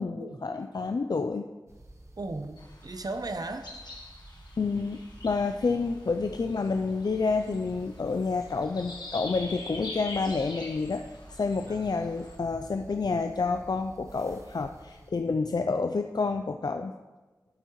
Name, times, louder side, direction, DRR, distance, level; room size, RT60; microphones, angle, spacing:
voice 1, 0.0-1.5 4.6-11.0 11.4-16.9, left 4 dB, 70° left, 6 dB, 0.4 m, -29 dB
sound 1, 1.7-15.1, right 1 dB, 40° right, 1.0 m, -51 dB
voice 2, 2.2-3.7 11.7-12.0, right 2 dB, 65° right, 9 dB, 0.6 m, -36 dB
sound 2, 2.6-12.4, left 2 dB, 85° left, 1.3 m, -45 dB
12.0 x 8.2 x 3.1 m, 1.2 s
wide cardioid pair, 60°, 7 cm